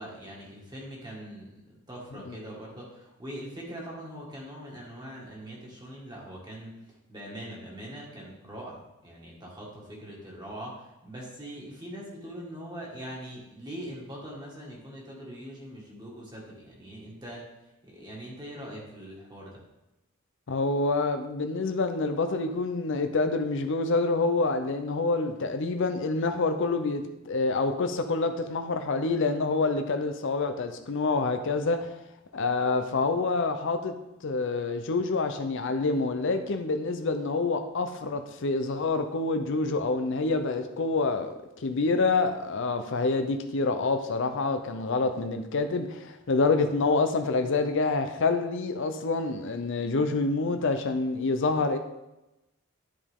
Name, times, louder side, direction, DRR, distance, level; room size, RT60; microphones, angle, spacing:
voice 1, 0.0-17.5 17.8-19.6, equal, 20° right, -3 dB, 1.9 m, -42 dB
voice 2, 20.5-31.9 32.3-33.9 34.2-51.8, left 3 dB, 60° left, 7 dB, 0.6 m, -27 dB
10.5 x 5.0 x 3.6 m, 0.95 s
head